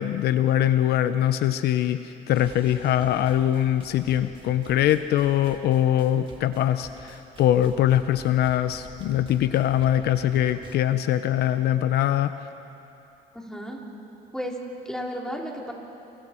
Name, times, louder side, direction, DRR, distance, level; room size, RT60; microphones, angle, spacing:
voice 1, 0.0-12.3, left 11 dB, 75° left, 11 dB, 0.8 m, -22 dB
sound 1, 2.3-10.8, right 4 dB, 30° right, 2.8 m, -47 dB
voice 2, 13.3-13.8 14.3-14.6 14.9-15.7, equal, 5° left, -1 dB, 3.7 m, -33 dB
28.5 x 28.5 x 4.5 m, 2.8 s
cardioid pair, 110°, 17 cm